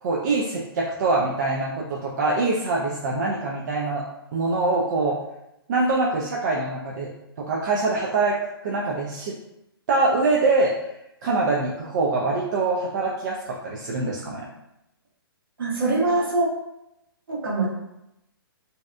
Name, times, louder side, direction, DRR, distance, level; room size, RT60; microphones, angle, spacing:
voice 1, 0.0-4.0 4.3-5.2 5.7-7.1 7.4-8.4 8.6-9.3 9.9-10.7 11.2-14.4, right 3 dB, 45° right, -3 dB, 0.4 m, -24 dB
voice 2, 15.6-16.5 17.3-17.7, right 3 dB, 65° right, -5 dB, 1.1 m, -23 dB
2.7 x 2.3 x 2.2 m, 0.85 s
figure-of-eight pair, 125°, 13 cm